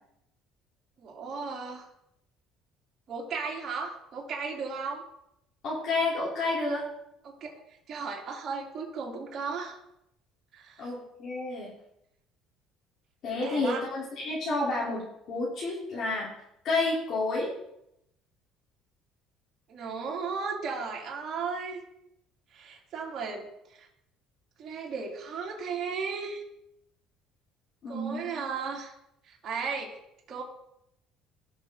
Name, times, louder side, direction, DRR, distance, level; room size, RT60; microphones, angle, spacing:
voice 1, 1.0-1.9 3.1-5.0 7.2-7.5 7.9-9.8 10.5-10.9 13.3-13.8 19.7-21.8 22.5-23.5 23.7-23.9 24.6-26.4 27.9-28.9 29.3-30.0 30.3-30.4, right 5 dB, 40° right, -3 dB, 2.9 m, -35 dB
voice 2, 5.6-6.8 10.8-11.7 13.2-15.0 15.3-16.3 16.6-17.5 27.8-28.4, left 2 dB, 50° left, -5 dB, 3.2 m, -30 dB
17.5 x 6.1 x 3.7 m, 0.79 s
cardioid pair, 125°, 0 cm